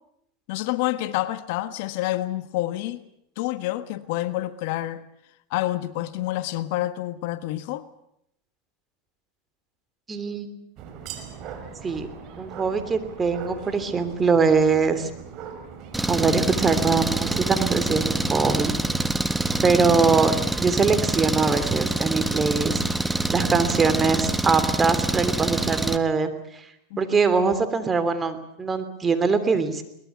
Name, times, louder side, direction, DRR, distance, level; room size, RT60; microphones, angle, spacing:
voice 1, 0.5-3.0 3.4-5.0 5.5-7.9 26.9-27.1, left 16 dB, 65° left, 1.4 m, -28 dB
voice 2, 10.1-10.5 11.8-12.1 12.4-15.1 16.1-18.8 19.6-20.3 20.6-22.8 23.3-26.7 27.0-29.8, right 5 dB, 20° right, 3.0 m, -22 dB
sound 1, 10.8-18.9, right 6 dB, 50° right, 5.0 m, -40 dB
Engine, 15.9-26.0, right 2 dB, 5° right, 1.5 m, -25 dB
22.5 x 20.0 x 8.4 m
supercardioid pair, 115°, 0 cm